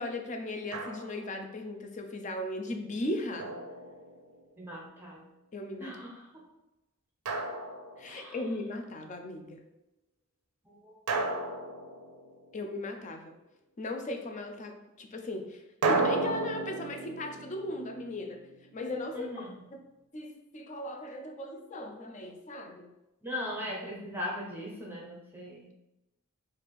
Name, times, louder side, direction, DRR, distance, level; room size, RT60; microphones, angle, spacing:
voice 1, 0.0-3.5 5.5-6.0 8.0-9.6 12.5-13.3 13.8-18.5 18.7-19.8 20.1-22.9, left 1 dB, 35° left, 4 dB, 0.5 m, -37 dB
Drum, 0.7-1.4 3.4-4.5 7.3-8.4 11.1-12.7 15.8-18.8, right 3 dB, 80° right, 0.6 m, -34 dB
voice 2, 4.6-5.3 5.8-6.2 8.1-8.3 10.7-10.9 19.1-19.5 23.2-25.7, left 1 dB, 10° right, -3 dB, 0.6 m, -39 dB
3.3 x 2.5 x 4.3 m, 0.94 s
head